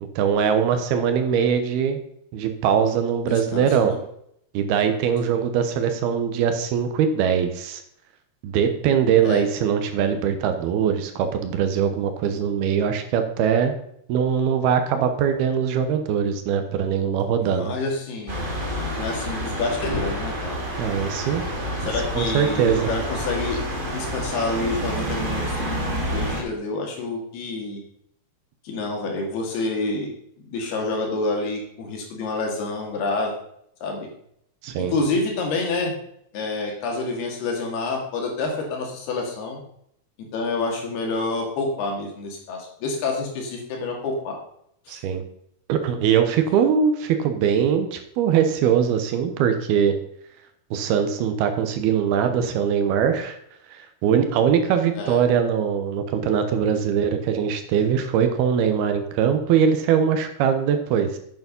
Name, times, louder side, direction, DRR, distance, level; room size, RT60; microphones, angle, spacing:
voice 1, 0.2-2.0 2.3-3.9 4.5-7.8 8.4-13.7 14.1-17.7 20.8-21.4 22.1-22.9 34.6-34.9 44.9-45.2 45.7-49.9 50.7-53.4 53.7-61.2, right 7 dB, 80° right, 8 dB, 3.0 m, -22 dB
voice 2, 3.3-4.0 5.3-5.4 9.2-9.5 17.4-18.4 19.0-20.6 21.8-23.6 23.9-27.8 28.6-30.1 30.4-33.3 33.8-34.1 34.9-35.9 36.3-39.6 40.3-44.4 44.9-45.0 55.0-55.2, left 3 dB, 75° left, 1 dB, 4.3 m, -28 dB
sound 1, 18.3-26.4, equal, 25° right, 1.1 m, -28 dB
9.2 x 8.8 x 5.3 m, 0.71 s
omnidirectional pair, 4.6 m